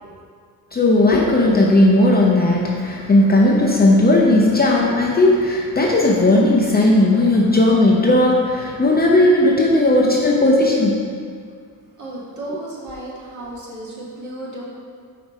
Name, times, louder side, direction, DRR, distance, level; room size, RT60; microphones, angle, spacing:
voice 1, 0.7-11.0 12.5-12.6, left 1 dB, 25° left, -3 dB, 0.6 m, -15 dB
voice 2, 12.0-14.6, right 2 dB, 45° right, -5 dB, 1.6 m, -33 dB
5.0 x 4.8 x 4.2 m, 2.1 s
cardioid pair, 110°, 42 cm